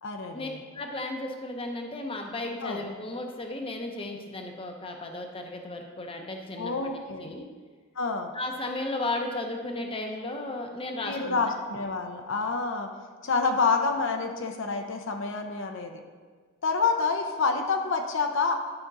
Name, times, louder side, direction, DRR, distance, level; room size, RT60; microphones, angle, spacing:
voice 1, 0.0-0.6 2.6-2.8 6.6-7.3 8.0-8.3 11.0-12.9 13.2-16.0 16.6-18.5, left 4 dB, 65° left, 4 dB, 0.7 m, -28 dB
voice 2, 0.7-6.7 7.2-7.5 8.3-11.4, left 2 dB, 25° left, 3 dB, 0.7 m, -34 dB
11.5 x 5.1 x 4.0 m, 1.5 s
head